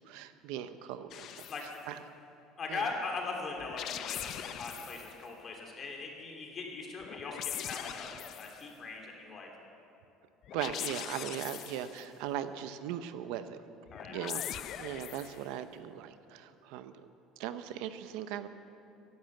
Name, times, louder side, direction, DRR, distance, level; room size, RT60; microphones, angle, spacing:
voice 1, 0.0-1.4 1.9-2.0 2.7-2.8 10.5-13.6 14.1-16.9 17.4-18.5, right 10 dB, 80° right, 11 dB, 0.7 m, -39 dB
sound 1, 1.1-1.8 3.6-5.2 7.0-8.7 10.4-12.1 13.9-15.5, left 11 dB, 50° left, 0.6 m, -41 dB
voice 2, 2.6-9.5 13.9-14.2, left 3 dB, 30° left, 1 dB, 3.0 m, -40 dB
15.5 x 11.0 x 7.8 m, 2.7 s
cardioid pair, 135°, 0 cm